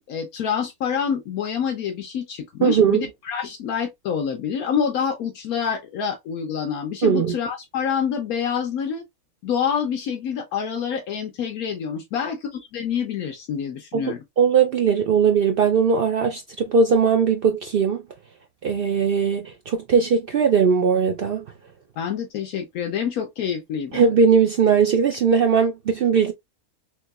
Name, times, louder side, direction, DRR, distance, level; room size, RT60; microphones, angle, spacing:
voice 1, 0.0-9.0 9.4-14.2 22.0-24.0, left 7 dB, 80° left, 1.2 m, -27 dB
voice 2, 2.6-3.1 7.0-7.4 13.9-18.0 18.6-21.4 23.9-26.3, right 6 dB, 85° right, 0.5 m, -19 dB
3.7 x 3.0 x 2.2 m
omnidirectional pair, 1.5 m